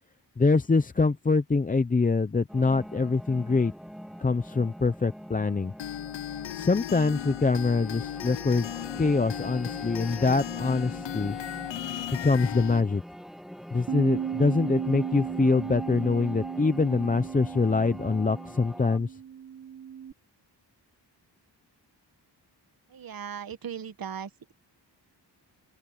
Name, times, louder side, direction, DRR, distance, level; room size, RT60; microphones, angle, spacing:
voice 1, 0.4-3.7 4.2-5.7 6.5-11.4 12.2-13.0 13.7-19.2, left 4 dB, 20° left, 0.6 m, -24 dB
sound 1, 2.5-19.0, equal, ahead, 1.8 m, -43 dB
sound 2, 5.8-12.8, left 11 dB, 90° left, 0.7 m, -36 dB
Bass guitar, 13.9-20.1, right 8 dB, 30° right, 1.3 m, -36 dB
voice 2, 22.9-24.5, right 8 dB, 55° right, 1.4 m, -38 dB
open air
wide cardioid pair, 165°, 42 cm